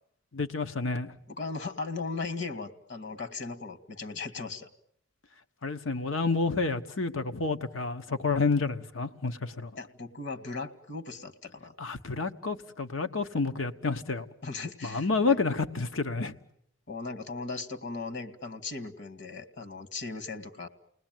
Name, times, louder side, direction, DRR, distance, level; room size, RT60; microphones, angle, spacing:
voice 1, 0.3-1.1 5.6-9.7 11.8-14.2 14.8-16.3, left 4 dB, 85° left, 1.3 m, -29 dB
voice 2, 1.3-4.7 9.8-11.7 14.4-15.4 16.9-20.7, left 3 dB, 65° left, 2.1 m, -37 dB
30.0 x 19.5 x 9.2 m
head